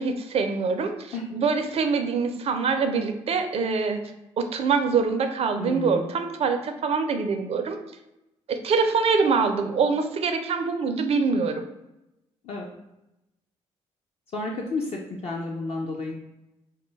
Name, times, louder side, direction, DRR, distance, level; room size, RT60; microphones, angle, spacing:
voice 1, 0.0-4.0 4.4-7.8 8.5-11.6, right 5 dB, 40° right, 7 dB, 0.4 m, -24 dB
voice 2, 5.6-6.1 12.4-12.7 14.3-16.1, left 3 dB, 45° left, -1 dB, 0.4 m, -31 dB
2.2 x 2.2 x 3.1 m, 0.91 s
figure-of-eight pair, 45°, 15 cm